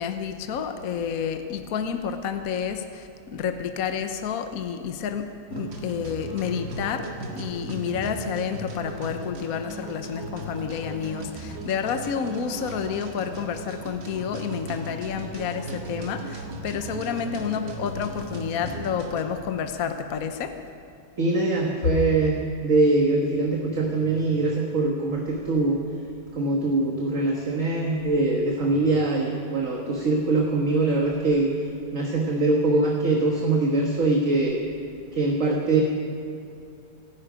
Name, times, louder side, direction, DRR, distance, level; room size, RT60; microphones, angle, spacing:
voice 1, 0.0-20.5, left 7 dB, 55° left, 8 dB, 1.1 m, -30 dB
sound 1, 5.5-19.3, right 2 dB, 65° right, 2.4 m, -36 dB
voice 2, 21.2-22.4 22.6-25.8 26.3-31.5 31.9-34.6 35.1-35.8, right 2 dB, 40° right, 0 dB, 1.6 m, -23 dB
26.0 x 10.5 x 5.0 m, 2.6 s
omnidirectional pair, 2.2 m